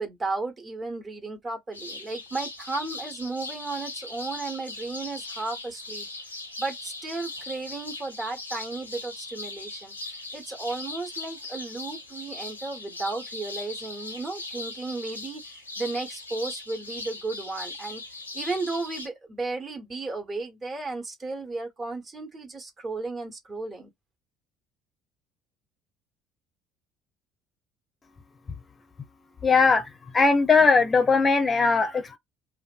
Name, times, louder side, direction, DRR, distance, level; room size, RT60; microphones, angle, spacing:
voice 1, 0.0-6.1 6.6-18.0 18.3-23.9, right 3 dB, 30° right, 0.9 m, -34 dB
sound 1, 1.7-19.1, left 2 dB, 90° left, 0.5 m, -39 dB
voice 2, 29.4-29.9 30.1-32.2, left 4 dB, 25° left, 0.5 m, -19 dB
2.5 x 2.2 x 2.4 m
figure-of-eight pair, 60°, 0 cm